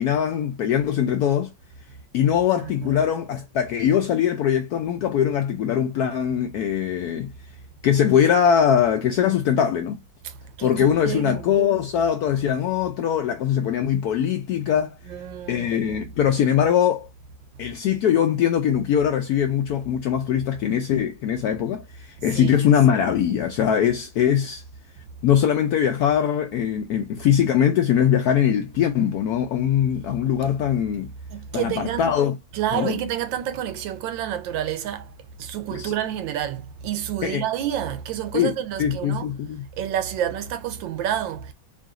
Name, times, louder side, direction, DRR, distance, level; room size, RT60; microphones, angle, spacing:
voice 1, 0.0-1.5 2.1-7.3 7.8-10.0 10.6-15.0 15.5-17.1 17.6-24.6 25.2-31.1 31.5-32.4 32.7-33.0 35.7-35.9 37.2-37.4 38.3-39.6, left 9 dB, 75° left, 0.8 m, -21 dB
voice 2, 2.6-3.0 10.2-11.6 15.1-16.1 22.3-22.6 31.3-32.1 32.5-35.1 35.4-39.3 39.7-41.5, right 10 dB, 80° right, 1.3 m, -29 dB
3.8 x 2.5 x 3.6 m
omnidirectional pair, 2.1 m